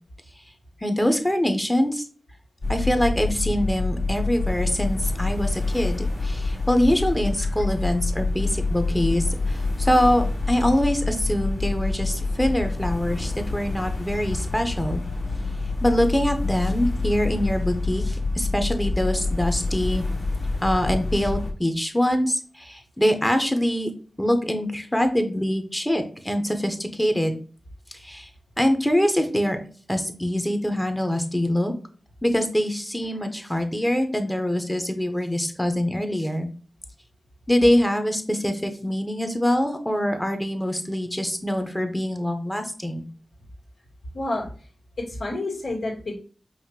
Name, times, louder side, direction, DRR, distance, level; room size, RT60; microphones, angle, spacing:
voice 1, 0.8-2.0 2.7-15.0 15.8-20.0 20.6-23.9 24.2-27.3 27.9-28.3 28.6-29.6 29.9-31.7 32.2-36.5 37.5-43.0, equal, 10° left, 6 dB, 0.8 m, -24 dB
sound 1, 2.6-21.5, left 3 dB, 60° left, 1.6 m, -27 dB
voice 2, 44.1-44.5 45.1-46.1, left 2 dB, 80° left, -5 dB, 1.9 m, -29 dB
5.6 x 2.5 x 2.9 m, 0.40 s
wide cardioid pair, 70°, 0 cm